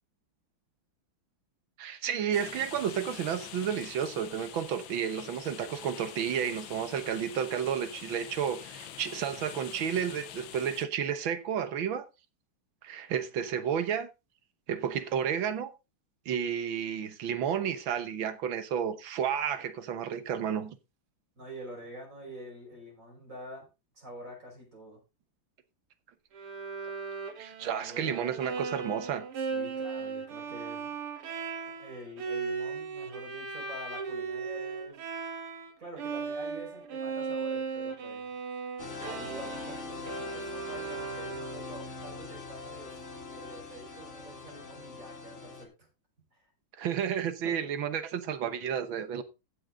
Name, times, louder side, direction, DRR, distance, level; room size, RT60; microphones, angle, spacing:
voice 1, 1.8-12.1 12.8-14.1 14.7-15.7 16.3-20.8 27.4-29.3 46.8-49.2, right 8 dB, 65° right, 1.8 m, -31 dB
sound 1, 2.3-10.9, left 10 dB, 65° left, 1.5 m, -45 dB
voice 2, 21.4-23.7 23.9-25.0 27.6-28.7 29.4-30.9 31.6-35.0 35.8-38.3 39.0-45.9 46.3-46.4 47.4-47.5, right 1 dB, 35° right, 5.6 m, -47 dB
Bowed string instrument, 26.3-35.7 36.0-41.8, right 5 dB, 80° right, 2.5 m, -37 dB
sound 2, 38.8-45.6, left 4 dB, 30° left, 2.4 m, -42 dB
15.5 x 6.3 x 3.8 m
omnidirectional pair, 2.4 m